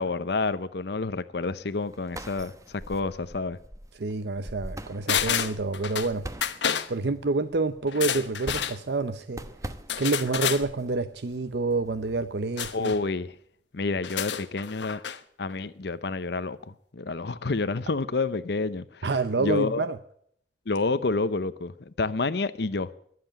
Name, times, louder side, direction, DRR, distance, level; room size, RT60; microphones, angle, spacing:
voice 1, 0.0-3.6 12.7-13.3 13.7-15.0 15.4-16.6 16.9-19.0 19.4-19.8 20.7-21.7 22.0-22.9, left 3 dB, 65° left, 0.7 m, -29 dB
sound 1, 1.7-13.0, right 1 dB, 20° right, 1.0 m, -43 dB
voice 2, 3.9-6.2 6.9-9.4 10.0-12.9 19.0-20.0, right 3 dB, 65° right, 0.7 m, -28 dB
sound 2, 5.1-6.1 6.4-6.9 7.9-8.8 9.9-10.6 12.6-13.0 14.0-15.2 15.5-15.6, left 8 dB, 90° left, 1.1 m, -29 dB
21.0 x 7.7 x 8.8 m
head